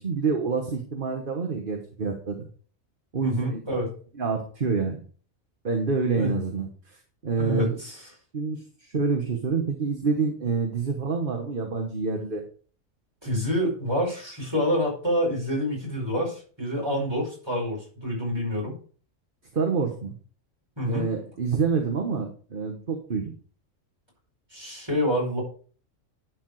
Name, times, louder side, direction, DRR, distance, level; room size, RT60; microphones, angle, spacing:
voice 1, 0.0-2.5 3.1-3.6 4.1-5.0 5.6-7.0 7.2-7.8 8.3-12.4 19.5-20.2 20.9-23.3, right 5 dB, 40° right, 3 dB, 1.3 m, -27 dB
voice 2, 3.2-3.9 6.2-6.3 7.4-8.0 13.2-18.7 20.8-21.1 24.5-25.4, equal, 20° right, -3 dB, 5.0 m, -27 dB
11.5 x 4.8 x 4.7 m, 0.41 s
omnidirectional pair, 1.4 m